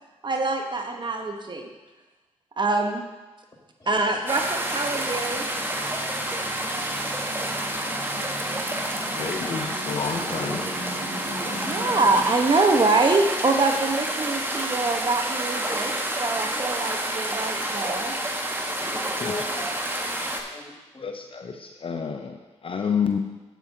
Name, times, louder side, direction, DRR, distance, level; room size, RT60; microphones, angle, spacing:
voice 1, 0.2-1.7 2.6-3.0 3.9-5.5 11.6-15.9 16.2-18.1, right 3 dB, 40° right, 4 dB, 1.1 m, -24 dB
sound 1, 4.3-20.4, right 1 dB, 20° right, 1.3 m, -29 dB
sound 2, 4.5-12.2, equal, 85° right, 2.9 m, -40 dB
voice 2, 9.1-10.9 18.7-19.3 21.0-23.2, left 6 dB, 50° left, 5 dB, 0.6 m, -30 dB
voice 3, 18.8-19.7 20.0-21.1, left 2 dB, 30° left, -1 dB, 2.0 m, -38 dB
9.1 x 8.3 x 2.8 m, 1.2 s
supercardioid pair, 45°, 12 cm